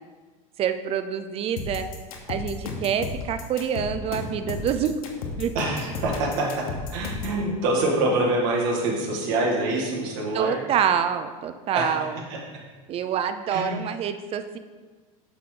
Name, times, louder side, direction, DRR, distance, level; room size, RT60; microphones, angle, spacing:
voice 1, 0.6-1.9 2.3-4.9 5.4-5.6 10.3-12.2 12.9-14.6, right 8 dB, 35° right, 10 dB, 0.5 m, -26 dB
sound 1, 1.6-7.4, left 4 dB, 80° left, 1.1 m, -33 dB
voice 2, 5.6-6.7 6.9-10.6 11.7-11.9 12.3-12.4 13.5-13.8, right 2 dB, 60° right, -1 dB, 1.9 m, -25 dB
6.5 x 5.7 x 3.9 m, 1.4 s
supercardioid pair, 120°, 18 cm